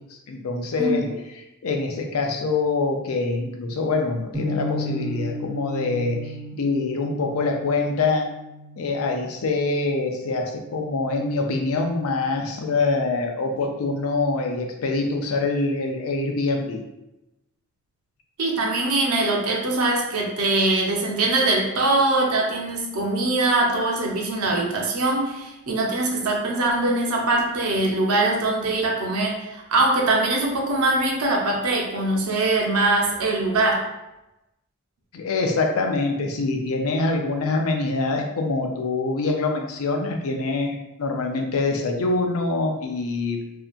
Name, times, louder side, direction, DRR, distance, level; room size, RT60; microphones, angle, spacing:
voice 1, 0.3-1.1 1.6-8.2 8.8-16.8 35.1-43.4, left 3 dB, 80° left, 2 dB, 0.5 m, -25 dB
sound 1, 4.3-10.4, left 1 dB, 20° right, 0.5 m, -34 dB
voice 2, 18.4-33.9, right 2 dB, 85° right, -1 dB, 0.6 m, -22 dB
2.7 x 2.3 x 2.4 m, 0.93 s
head